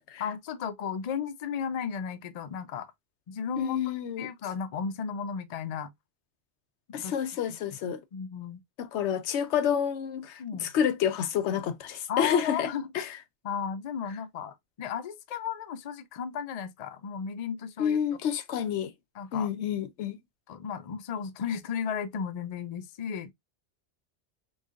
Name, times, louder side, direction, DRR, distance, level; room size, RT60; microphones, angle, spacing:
voice 1, 0.2-2.9 3.3-3.8 4.2-5.9 7.0-7.1 8.1-8.6 10.4-10.7 12.1-12.9 13.4-18.0 19.2-19.5 20.5-23.3, left 7 dB, 50° left, 0.5 m, -34 dB
voice 2, 3.6-4.3 6.9-8.0 8.8-12.7 12.9-13.1 17.8-18.9 19.3-20.2, left 8 dB, 90° left, 0.9 m, -29 dB
3.9 x 3.1 x 2.4 m
omnidirectional pair, 1.1 m